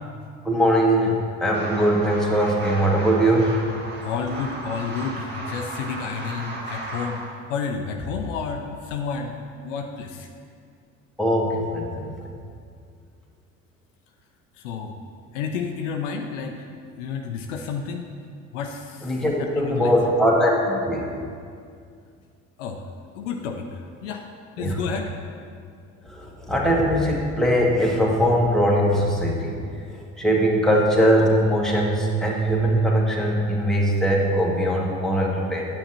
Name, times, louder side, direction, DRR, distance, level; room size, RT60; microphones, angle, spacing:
voice 1, 0.4-3.6 11.2-12.1 19.0-20.6 20.9-21.0 24.6-24.8 26.1-29.6 29.9-35.7, equal, ahead, -3 dB, 1.7 m, -21 dB
sound 1, 1.5-7.3, right 2 dB, 25° right, 1.7 m, -35 dB
voice 2, 4.0-10.3 14.6-15.0 15.3-16.7 17.0-18.1 18.5-20.0 20.6-20.7 22.6-22.8 23.1-23.7 24.0-24.2 24.6-25.1, left 5 dB, 65° left, 3 dB, 0.7 m, -31 dB
10.5 x 8.9 x 2.9 m, 2.3 s
figure-of-eight pair, 50°, 39 cm